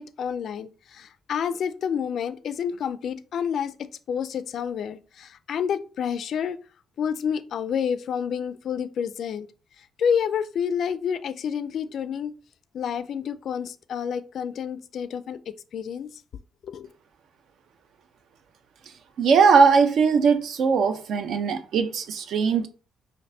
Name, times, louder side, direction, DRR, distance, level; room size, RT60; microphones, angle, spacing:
voice 1, 0.0-6.6 7.0-9.5 9.8-12.3 12.7-16.2 16.6-16.9, left 7 dB, 60° left, 0.3 m, -29 dB
voice 2, 19.2-22.7, right 5 dB, 65° right, 0.5 m, -20 dB
5.2 x 2.5 x 2.7 m
cardioid pair, 130°, 0 cm